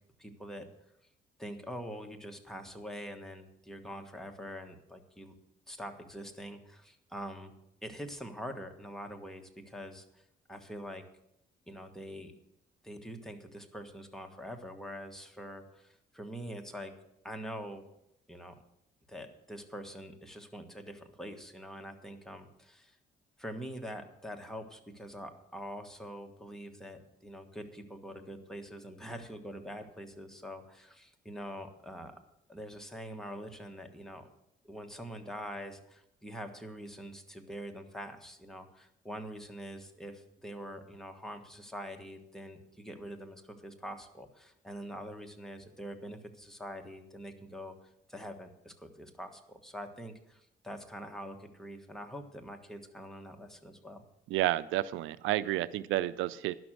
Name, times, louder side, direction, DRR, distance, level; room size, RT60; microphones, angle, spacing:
voice 1, 0.2-0.7 1.4-5.3 5.7-7.5 7.8-10.2 10.5-11.1 11.7-12.3 12.8-16.9 17.2-17.8 18.3-18.5 19.1-23.0 23.4-32.2 32.5-34.3 34.6-47.7 48.1-54.0, equal, ahead, 4 dB, 1.5 m, -44 dB
voice 2, 54.3-56.5, right 14 dB, 90° right, 17 dB, 0.4 m, -30 dB
11.5 x 6.1 x 7.6 m, 0.81 s
cardioid pair, 90°, 20 cm